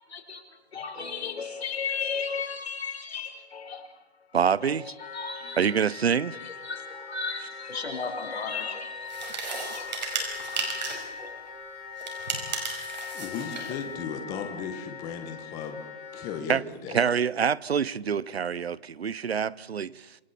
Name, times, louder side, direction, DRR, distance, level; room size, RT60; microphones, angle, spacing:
voice 1, 0.1-0.4 0.7-4.0 4.6-5.7 6.3-11.5, left 5 dB, 80° left, 4.3 m, -36 dB
voice 2, 4.3-4.9 5.6-6.4 16.5-16.6 16.9-20.2, right 7 dB, 80° right, 0.9 m, -26 dB
Wind instrument woodwind instrument, 5.0-16.4, left 6 dB, 50° left, 5.8 m, -40 dB
sound 1, 9.1-11.1 12.0-13.8, right 4 dB, 45° right, 5.2 m, -34 dB
voice 3, 12.7-15.8 16.1-17.0, left 7 dB, 10° left, 1.2 m, -36 dB
27.0 x 23.5 x 4.3 m
hypercardioid pair, 165°, 31 cm